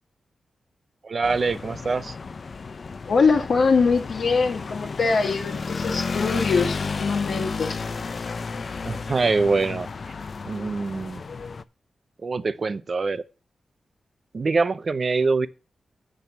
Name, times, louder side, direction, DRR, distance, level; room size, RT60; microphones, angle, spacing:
voice 1, 1.0-2.2 8.8-9.9 10.4-11.2 12.2-13.2 14.3-15.5, right 4 dB, 40° right, 0.6 m, -24 dB
sound 1, 1.2-11.6, left 4 dB, 45° left, 0.5 m, -32 dB
voice 2, 3.1-7.8, left 4 dB, 65° left, 1.3 m, -23 dB
9.0 x 6.2 x 6.8 m
wide cardioid pair, 135°, 0 cm